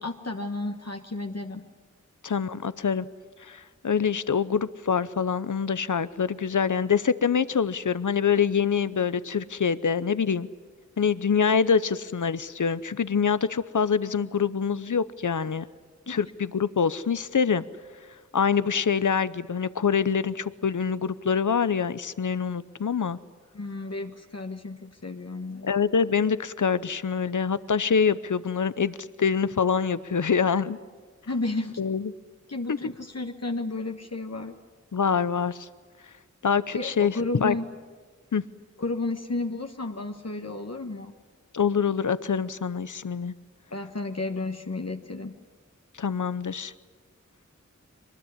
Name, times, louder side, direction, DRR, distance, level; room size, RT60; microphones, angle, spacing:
voice 1, 0.0-1.6 16.1-16.2 23.5-25.7 31.3-31.8 32.5-34.5 36.7-37.6 38.8-41.1 43.7-45.3, left 2 dB, 55° left, 4 dB, 1.4 m, -32 dB
voice 2, 2.2-3.1 3.4-10.5 11.0-15.7 16.1-17.6 18.3-23.2 25.6-30.8 31.8-32.1 32.7-32.8 34.9-35.7 36.4-37.2 37.4-37.5 38.3-38.4 41.5-43.3 46.0-46.7, left 6 dB, 85° left, 15 dB, 0.7 m, -25 dB
23.5 x 20.5 x 9.9 m, 1.4 s
wide cardioid pair, 40°, 30 cm